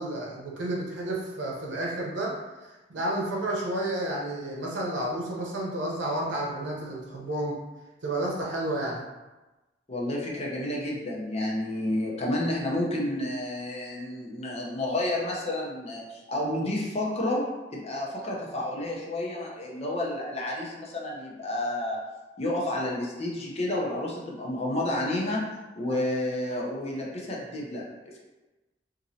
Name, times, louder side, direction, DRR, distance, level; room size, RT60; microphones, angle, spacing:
voice 1, 0.0-7.6 8.0-9.1, right 1 dB, 75° right, -3 dB, 0.8 m, -31 dB
voice 2, 9.9-17.4 17.7-22.0 22.4-25.4 25.8-28.2, left 1 dB, 35° left, -3 dB, 0.6 m, -30 dB
3.0 x 2.6 x 2.7 m, 1.1 s
head